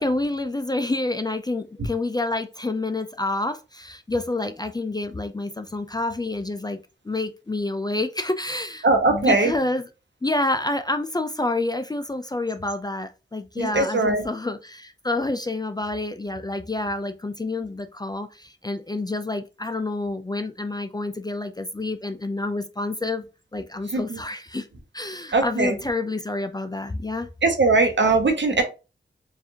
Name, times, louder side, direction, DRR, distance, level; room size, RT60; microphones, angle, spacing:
voice 1, 0.0-6.8 7.0-9.8 10.2-23.2 23.5-24.7 24.9-27.3, left 2 dB, 20° left, 0.4 m, -28 dB
voice 2, 8.8-9.5 13.6-14.2 23.9-24.2 25.3-25.7 27.4-28.6, right 3 dB, 60° right, 1.0 m, -20 dB
4.6 x 2.6 x 2.8 m
cardioid pair, 50°, 21 cm